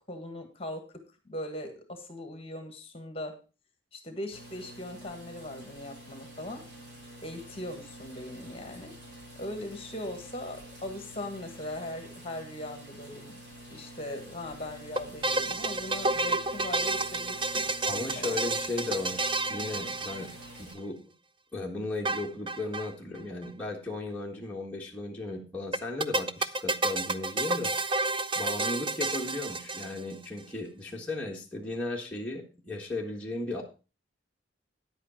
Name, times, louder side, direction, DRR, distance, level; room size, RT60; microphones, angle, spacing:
voice 1, 0.1-0.8 1.2-3.3 3.9-6.6 7.2-8.9 9.4-13.4 13.7-17.6 17.9-18.3, left 1 dB, 30° left, 5 dB, 1.6 m, -40 dB
sound 1, 4.3-20.7, equal, 65° right, 4.1 m, -48 dB
sound 2, 15.0-20.7 22.1-22.9 23.2-23.3 23.4-23.5 25.7-30.2, right 2 dB, 25° right, 0.4 m, -30 dB
voice 2, 17.8-20.3 20.6-21.0 21.5-27.9 28.3-33.6, left 2 dB, 5° left, -3 dB, 1.5 m, -36 dB
10.0 x 8.2 x 4.2 m, 0.32 s
head